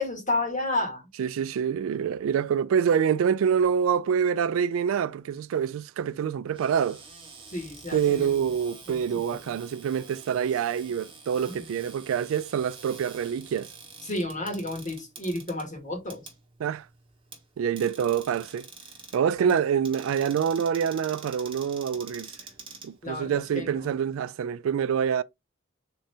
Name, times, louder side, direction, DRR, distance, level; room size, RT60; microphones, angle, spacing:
voice 1, 0.0-1.1 7.5-8.5 8.9-9.0 9.3-9.5 11.5-11.6 14.0-16.3 19.4-19.5 23.0-23.9, left 2 dB, 40° left, 1.8 m, -32 dB
voice 2, 1.2-7.0 7.9-13.7 16.6-16.9 17.6-18.7 19.1-22.4 22.8-25.2, right 7 dB, 80° right, 0.3 m, -26 dB
Cupboard open or close, 6.5-23.5, right 4 dB, 25° right, 1.1 m, -48 dB
3.8 x 2.7 x 3.3 m
head